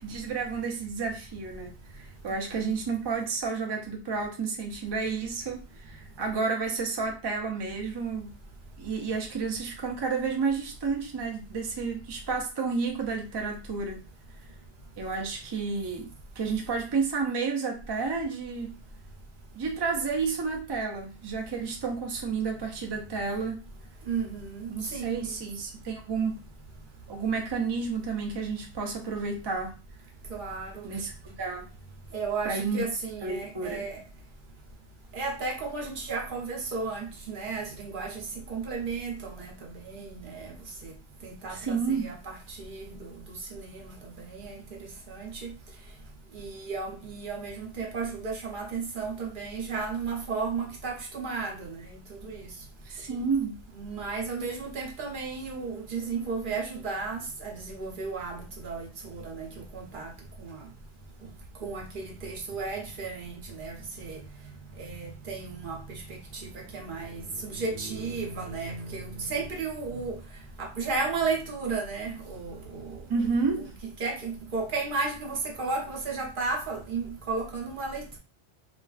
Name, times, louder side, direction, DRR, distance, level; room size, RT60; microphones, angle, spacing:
voice 1, 0.0-8.3 8.8-14.0 15.0-16.1 16.4-18.8 19.5-23.6 24.7-26.4 27.1-29.7 30.8-31.1 31.4-31.7 32.4-32.8 33.2-33.9 41.5-42.1 52.9-53.6 73.1-73.7, right 4 dB, 40° right, 0.3 m, -31 dB
voice 2, 24.1-25.3 30.3-30.9 32.1-34.0 35.1-38.1 38.5-39.5 39.8-40.5 40.8-40.9 41.2-43.0 43.5-43.9 44.3-44.6 45.1-45.5 46.3-52.0 52.2-52.4 53.8-58.4 58.6-59.5 59.7-60.1 60.5-60.6 61.6-64.2 64.8-66.0 66.7-70.2 70.6-72.9 74.0-78.2, right 4 dB, 55° right, 0.8 m, -34 dB
2.4 x 2.3 x 2.3 m
omnidirectional pair, 1.1 m